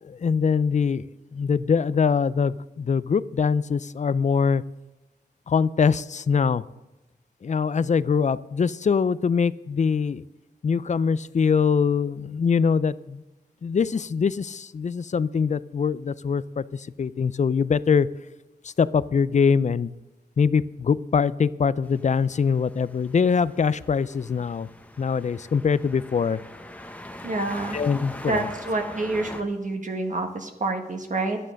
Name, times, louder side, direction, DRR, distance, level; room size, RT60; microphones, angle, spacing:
voice 1, 0.2-1.0 1.3-4.6 5.5-6.6 7.4-10.2 10.6-13.2 13.6-16.4 17.0-18.1 18.8-19.9 20.4-24.7 25.0-26.4 27.7-28.4, left 6 dB, 45° left, 18 dB, 0.4 m, -23 dB
sound 1, 21.8-29.4, left 1 dB, 10° left, 1.0 m, -42 dB
voice 2, 27.2-27.8 28.3-31.4, right 2 dB, 50° right, 4 dB, 1.5 m, -28 dB
11.5 x 10.0 x 6.4 m, 1.0 s
wide cardioid pair, 130°, 17 cm